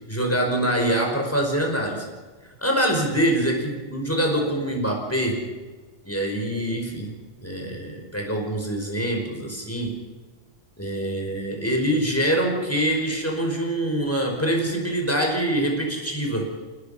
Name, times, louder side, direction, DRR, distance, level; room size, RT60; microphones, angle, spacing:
voice 1, 0.1-2.0 2.6-5.5 6.0-7.1 7.4-10.0 10.8-16.5, right 1 dB, 10° left, 1 dB, 5.1 m, -24 dB
29.0 x 18.5 x 5.7 m, 1.4 s
omnidirectional pair, 1.2 m